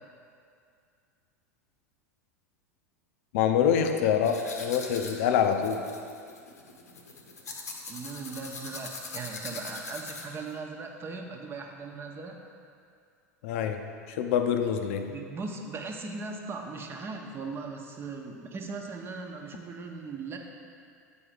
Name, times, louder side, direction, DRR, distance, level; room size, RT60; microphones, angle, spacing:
voice 1, 3.3-5.8 13.4-13.8 14.1-15.1, left 8 dB, 60° left, 6 dB, 0.6 m, -25 dB
sound 1, 4.2-10.5, left 3 dB, 80° left, 0.9 m, -42 dB
voice 2, 7.9-12.4 15.1-20.4, right 4 dB, 25° right, 2 dB, 1.0 m, -38 dB
8.7 x 4.8 x 5.0 m, 2.3 s
figure-of-eight pair, 85°, 8 cm